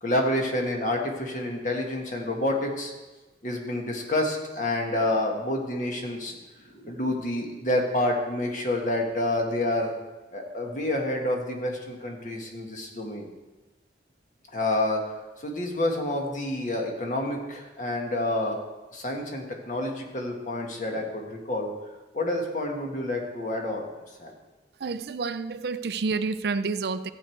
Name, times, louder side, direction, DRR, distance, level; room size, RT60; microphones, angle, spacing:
voice 1, 0.0-2.9 3.4-6.3 6.6-9.9 10.3-13.3 14.5-18.6 18.9-21.7 22.1-23.9 24.2-24.3, left 1 dB, 45° left, 1 dB, 1.6 m, -28 dB
voice 2, 24.8-27.1, right 4 dB, 60° right, 12 dB, 0.4 m, -29 dB
14.0 x 8.1 x 4.6 m, 1.2 s
head